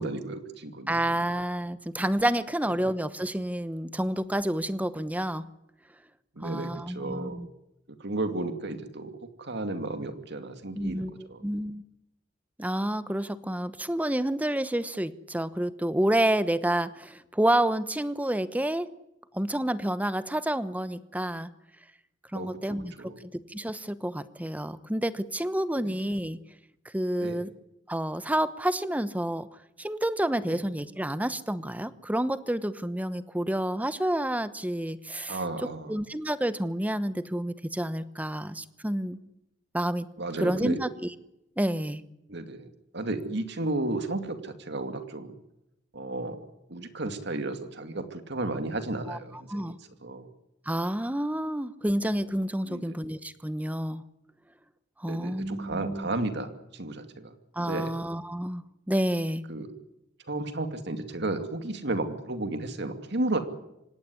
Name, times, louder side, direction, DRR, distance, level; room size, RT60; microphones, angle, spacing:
voice 1, 0.0-1.2 2.7-2.9 6.4-7.5 8.0-11.4 22.3-23.2 25.8-25.9 27.2-27.4 30.5-30.6 35.3-36.0 40.2-40.8 42.3-45.4 45.9-49.8 50.0-50.3 52.6-52.9 55.1-57.3 57.6-57.9 59.5-59.7 60.3-63.4, right 2 dB, 65° right, 8 dB, 2.4 m, -33 dB
voice 2, 0.9-5.5 6.4-7.5 10.7-11.8 12.6-18.9 19.3-21.5 22.3-26.4 26.9-27.5 27.9-29.5 29.8-39.2 39.7-40.1 40.4-40.9 41.6-42.0 49.1-49.2 49.5-49.8 50.7-54.0 55.0-56.1 57.5-59.4, right 1 dB, 10° right, 14 dB, 1.0 m, -29 dB
25.5 x 18.0 x 9.7 m, 0.88 s
head